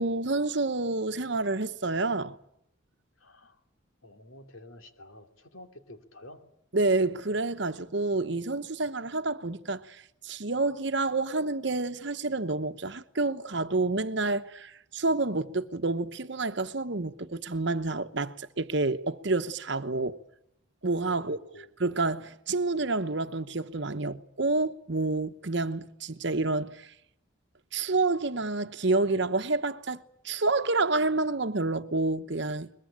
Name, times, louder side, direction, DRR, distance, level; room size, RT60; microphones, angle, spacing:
voice 1, 0.0-2.4 6.7-20.2 20.8-21.4 21.8-26.9 27.7-32.7, right 3 dB, 60° right, 1.0 m, -29 dB
voice 2, 3.2-3.6 4.0-6.4 21.1-21.7, left 1 dB, 80° left, 2.9 m, -50 dB
22.5 x 22.0 x 8.9 m
head